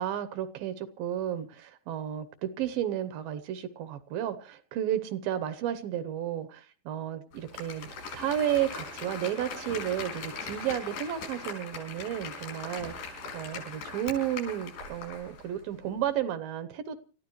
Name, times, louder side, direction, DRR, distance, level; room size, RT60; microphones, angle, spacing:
voice 1, 0.0-17.0, right 11 dB, 75° right, 11 dB, 2.5 m, -32 dB
Applause, 7.3-15.5 15.8-15.9, left 4 dB, 60° left, 7.1 m, -40 dB
29.0 x 14.0 x 3.1 m, 0.38 s
omnidirectional pair, 4.4 m